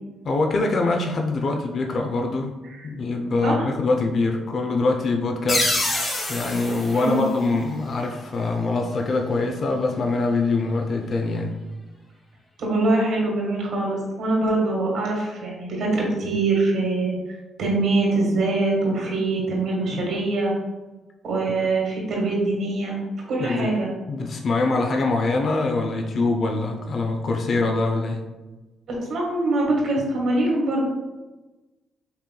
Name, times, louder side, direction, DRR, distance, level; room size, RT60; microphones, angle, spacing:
voice 1, 0.2-2.5 2.8-5.8 6.3-11.5 23.4-23.7 24.1-28.2, left 3 dB, 50° left, 2 dB, 0.5 m, -24 dB
sound 1, 5.5-8.1, left 1 dB, 30° left, 1.1 m, -27 dB
voice 2, 6.9-7.2 12.6-17.1 17.6-20.5 21.2-23.0 23.3-23.9 28.9-30.8, right 2 dB, 65° right, -2 dB, 1.4 m, -23 dB
5.6 x 3.1 x 2.2 m, 1.1 s
cardioid pair, 90°, 0 cm